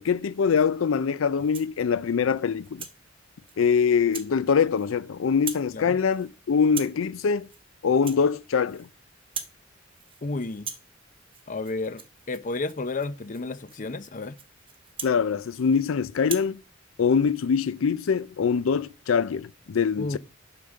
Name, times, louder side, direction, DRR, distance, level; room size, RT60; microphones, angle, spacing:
voice 1, 0.0-2.8 3.6-7.5 7.8-8.9 15.0-16.6 17.0-20.2, left 6 dB, 85° left, 0.4 m, -23 dB
Rattle (instrument), 1.3-1.8 2.3-3.0 3.5-3.7 4.1-4.3 4.6-5.1 5.3-5.7 6.0-6.3 6.7-7.0 7.4-7.6 7.9-8.9 9.2-9.6 9.9-10.2 10.5-15.8 16.2-16.5, right 7 dB, 30° right, 1.2 m, -41 dB
voice 2, 10.2-10.7 11.5-14.4 20.0-20.2, left 3 dB, 40° left, 0.7 m, -32 dB
10.5 x 5.2 x 6.4 m
head